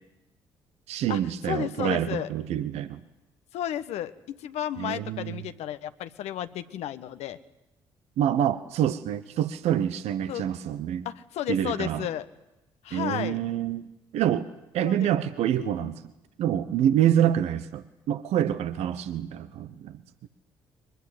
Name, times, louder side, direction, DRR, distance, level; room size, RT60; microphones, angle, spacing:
voice 1, 0.9-3.0 4.8-5.4 8.2-11.1 11.5-12.1 12.9-13.9 14.1-14.5 14.7-16.0 16.4-20.3, right 10 dB, 65° right, 12 dB, 1.1 m, -26 dB
voice 2, 1.4-2.3 3.5-7.4 10.3-10.5 11.0-12.3 12.8-13.4 14.8-15.1 15.6-15.9, left 11 dB, 65° left, 11 dB, 1.2 m, -33 dB
23.0 x 21.0 x 9.6 m, 0.93 s
hypercardioid pair, 50°, 12 cm